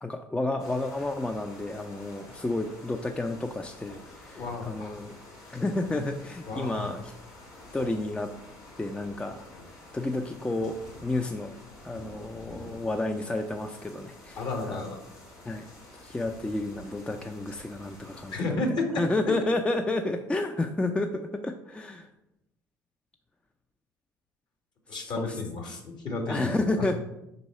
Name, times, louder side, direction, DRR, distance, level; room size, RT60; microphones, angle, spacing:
voice 1, 0.0-5.1 5.5-7.1 7.7-8.3 8.8-11.5 11.8-14.9 15.5-15.7 16.0-18.3 19.0-22.1 24.9-25.4 26.3-26.9, left 2 dB, 10° left, 5 dB, 0.5 m, -31 dB
sound 1, 0.6-18.4, left 1 dB, 80° left, 1.9 m, -48 dB
voice 2, 4.3-5.0 6.5-6.9 14.4-15.0 18.3-19.0 24.9-26.9, left 2 dB, 50° left, 2 dB, 1.6 m, -32 dB
4.6 x 4.0 x 5.4 m, 0.86 s
hypercardioid pair, 65°, 10 cm